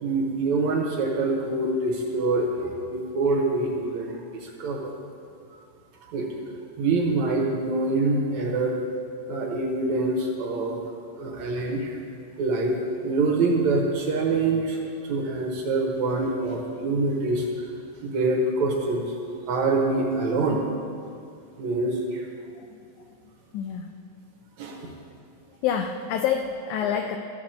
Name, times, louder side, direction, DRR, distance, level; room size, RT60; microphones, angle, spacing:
voice 1, 0.0-4.9 6.1-6.3 6.8-8.8 9.3-10.8 11.2-12.0 12.4-12.8 13.0-17.5 18.0-19.2 19.5-20.6 21.6-22.3 24.6-24.9, right 3 dB, 70° right, 0 dB, 2.1 m, -25 dB
voice 2, 23.5-23.9 25.6-27.2, left 8 dB, 80° left, 4 dB, 1.7 m, -27 dB
13.5 x 4.7 x 7.6 m, 2.4 s
omnidirectional pair, 3.8 m